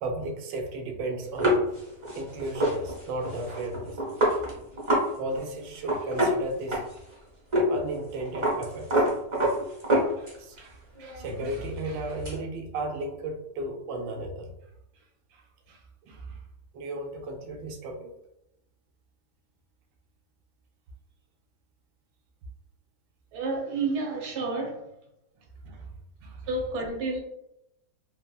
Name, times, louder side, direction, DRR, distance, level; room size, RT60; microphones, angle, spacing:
voice 1, 0.0-1.6 2.1-4.0 5.2-6.8 7.7-8.9 10.2-14.5 15.3-15.4 15.7-16.4 16.7-18.1 25.6-25.9 26.2-26.5, right 2 dB, 85° right, 3 dB, 1.2 m, -35 dB
sound 1, 1.4-5.1 5.4-5.5 5.8-7.1 7.5-7.7 8.0-10.6 11.0-12.4, equal, 35° right, 0.4 m, -26 dB
voice 2, 23.3-24.8 26.5-27.2, right 3 dB, 55° right, 0 dB, 0.8 m, -30 dB
3.6 x 2.1 x 2.2 m, 0.82 s
omnidirectional pair, 1.9 m